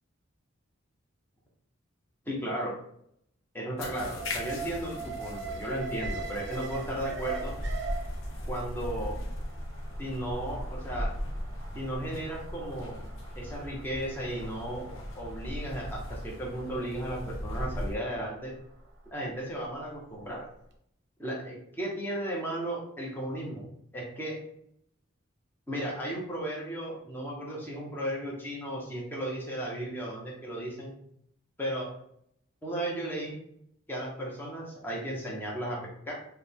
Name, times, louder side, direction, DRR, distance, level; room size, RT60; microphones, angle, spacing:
voice 1, 2.3-2.7 3.5-7.5 8.5-9.2 10.0-11.1 11.7-13.0 13.3-14.9 15.2-18.5 19.1-20.5 21.2-23.6 23.9-24.4 25.7-30.9 31.6-31.9 32.6-33.4 33.9-35.8 36.1-36.2, right 1 dB, 10° left, -4 dB, 0.8 m, -35 dB
sound 1, 3.8-18.0, left 1 dB, 80° left, 0.6 m, -38 dB
Alarm, 4.2-20.3 20.6-20.7, right 2 dB, 55° right, 0.6 m, -42 dB
4.5 x 2.2 x 3.5 m, 0.71 s
head